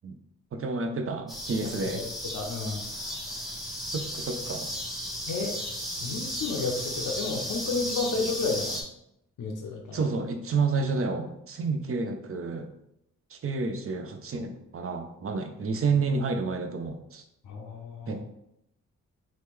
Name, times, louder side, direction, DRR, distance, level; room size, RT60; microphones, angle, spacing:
voice 1, 0.5-2.0 3.9-4.7 9.9-12.7 13.3-17.2 18.1-18.2, right 4 dB, 45° right, 5 dB, 0.5 m, -30 dB
sound 1, 1.3-8.8, equal, ahead, 0.9 m, -35 dB
voice 2, 2.3-2.9 5.3-5.6 6.0-8.8 9.4-10.0 17.4-18.2, left 4 dB, 65° left, 1 dB, 0.6 m, -31 dB
3.0 x 2.2 x 3.4 m, 0.79 s
cardioid pair, 60°, 33 cm